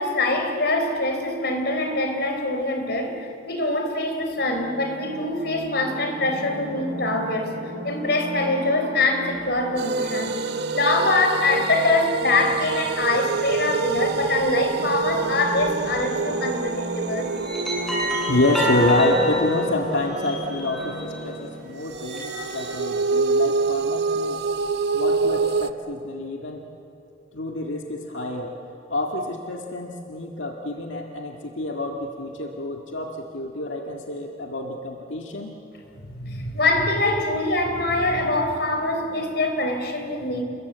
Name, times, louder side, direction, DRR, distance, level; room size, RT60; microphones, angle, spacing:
voice 1, 0.0-10.4 10.7-17.3 36.1-40.4, left 2 dB, 60° left, 4 dB, 3.9 m, -24 dB
sound 1, 4.3-21.7, right 1 dB, 85° right, 5.7 m, -37 dB
sound 2, 9.8-21.3 21.9-25.7, right 4 dB, 60° right, 0.9 m, -27 dB
sound 3, 16.1-16.4 17.1-21.3 21.8-22.9, left 1 dB, ahead, 6.9 m, -28 dB
voice 2, 18.3-24.4 24.9-26.6 27.3-28.6 28.9-35.6, left 1 dB, 90° left, 2 dB, 1.9 m, -27 dB
29.5 x 22.0 x 8.2 m, 2.6 s
head